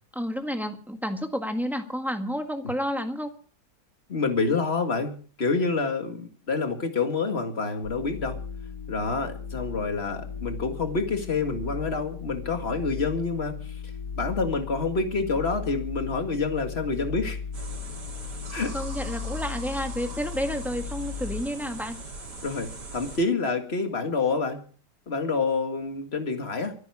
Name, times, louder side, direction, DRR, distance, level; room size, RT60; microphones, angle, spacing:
voice 1, 0.1-3.3 18.7-22.0, equal, ahead, 5 dB, 1.6 m, -30 dB
voice 2, 4.1-8.4 8.9-13.8 14.1-17.4 18.5-18.7 22.4-24.6 25.1-26.7, left 4 dB, 40° left, 6 dB, 2.1 m, -27 dB
sound 1, 7.8-21.4, left 6 dB, 65° left, 1.5 m, -37 dB
sound 2, 17.5-23.2, right 3 dB, 85° right, 3.7 m, -40 dB
24.5 x 9.4 x 4.8 m, 0.41 s
omnidirectional pair, 1.8 m